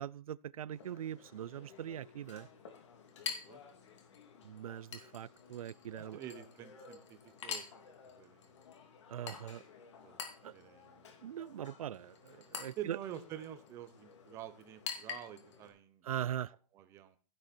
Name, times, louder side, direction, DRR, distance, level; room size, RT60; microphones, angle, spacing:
voice 1, 0.0-2.5 4.4-6.2 9.1-9.6 10.4-10.5 11.2-13.0 16.0-16.5, right 10 dB, 70° right, 0.5 m, -41 dB
Chink clink, 0.7-15.7, left 6 dB, 50° left, 2.7 m, -48 dB
voice 2, 3.2-3.6 6.0-7.7 8.1-8.5 10.0-10.2 10.5-11.1 12.8-16.2 16.7-17.2, right 11 dB, 15° right, 0.9 m, -48 dB
15.5 x 7.9 x 4.4 m
hypercardioid pair, 170°, 19 cm